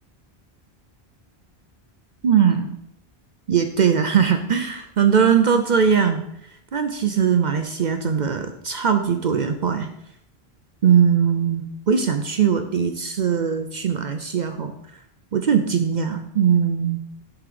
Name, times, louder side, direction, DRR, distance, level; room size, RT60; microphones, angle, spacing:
voice 1, 2.2-2.8 3.5-6.2 6.7-9.9 10.8-14.7 15.3-17.0, right 7 dB, 55° right, 7 dB, 0.6 m, -20 dB
10.0 x 3.7 x 4.9 m, 0.77 s
omnidirectional pair, 1.0 m